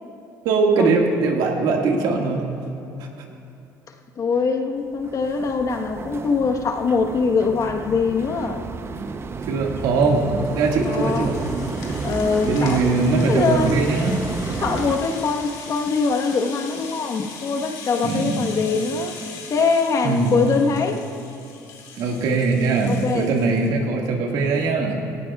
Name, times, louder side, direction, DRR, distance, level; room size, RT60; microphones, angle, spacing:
voice 1, 0.4-2.4 9.5-10.3 10.5-11.4 12.5-14.1 18.0-18.4 20.0-20.4 22.0-25.0, right 4 dB, 75° right, 1 dB, 1.9 m, -21 dB
voice 2, 4.2-8.6 10.8-11.3 12.0-12.9 13.3-13.9 14.6-19.1 19.5-21.0 22.9-23.3, left 4 dB, 45° left, 4 dB, 1.3 m, -23 dB
sound 1, 5.0-15.0, right 4 dB, 35° right, 0.7 m, -31 dB
Rattle (instrument), 9.5-23.7, left 5 dB, 80° left, 2.4 m, -40 dB
18.0 x 16.0 x 2.4 m, 2.7 s
supercardioid pair, 85°, 7 cm